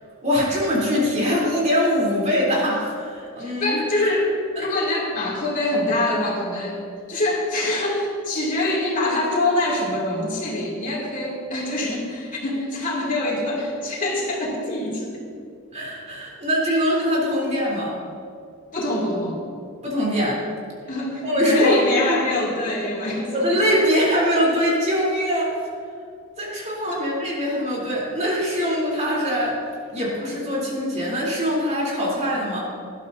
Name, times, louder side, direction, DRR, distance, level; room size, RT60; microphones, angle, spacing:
voice 1, 0.2-4.1 15.7-17.9 19.8-20.4 21.2-21.8 22.1-22.2 23.3-25.5 26.4-29.6 29.9-32.6, equal, 35° right, -5 dB, 3.6 m, -22 dB
voice 2, 3.4-4.3 4.6-15.2 18.7-19.4 20.9-23.5 23.9-24.0 26.9-27.0, left 1 dB, 40° left, -4 dB, 2.7 m, -24 dB
19.0 x 12.0 x 2.8 m, 2.3 s
head